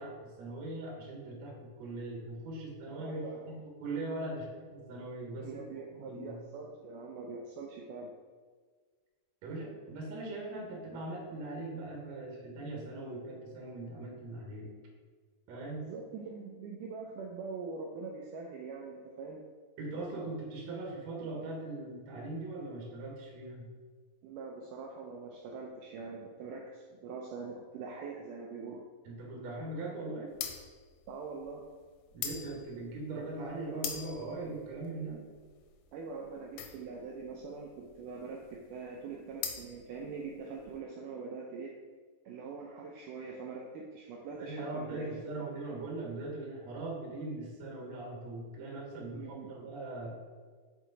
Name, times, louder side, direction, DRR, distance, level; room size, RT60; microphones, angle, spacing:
voice 1, 0.0-5.6 5.9-6.4 9.4-14.7 15.5-15.9 19.8-23.7 29.0-30.3 32.1-35.2 44.4-50.2, right 2 dB, 60° right, -2 dB, 2.1 m, -40 dB
voice 2, 2.9-3.6 5.3-8.1 15.8-19.4 24.2-28.9 31.1-31.7 35.9-41.8 42.3-45.5 49.1-49.5, right 4 dB, 85° right, 0 dB, 1.8 m, -43 dB
sound 1, 30.3-40.7, left 8 dB, 80° left, 2.1 m, -43 dB
5.9 x 4.5 x 3.9 m, 1.5 s
omnidirectional pair, 4.2 m